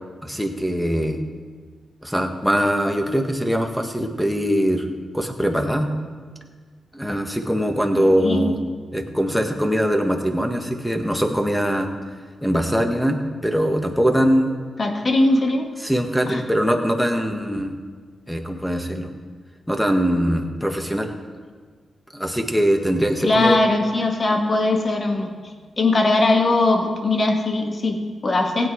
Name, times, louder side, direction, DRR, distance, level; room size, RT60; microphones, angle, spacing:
voice 1, 0.2-1.2 2.0-4.9 5.1-5.9 6.9-8.6 8.9-11.9 12.4-14.6 15.8-17.8 18.3-19.1 19.7-21.1 22.1-23.6, equal, ahead, 4 dB, 1.8 m, -22 dB
voice 2, 7.9-8.4 14.8-15.7 16.3-16.4 23.2-25.3 25.8-28.7, left 2 dB, 50° left, 4 dB, 1.8 m, -20 dB
16.0 x 8.7 x 4.8 m, 1.5 s
cardioid pair, 50°, 0 cm